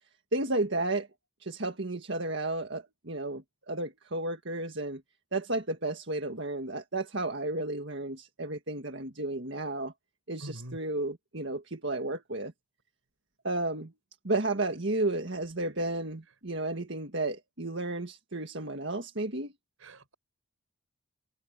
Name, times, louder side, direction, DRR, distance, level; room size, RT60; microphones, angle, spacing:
voice 1, 0.3-1.1 1.4-5.0 5.3-9.9 10.3-12.5 13.4-13.9 14.2-19.5, right 2 dB, 55° right, 1.8 m, -32 dB
voice 2, 10.4-10.8 19.9-20.1, equal, 75° right, 4.8 m, -43 dB
head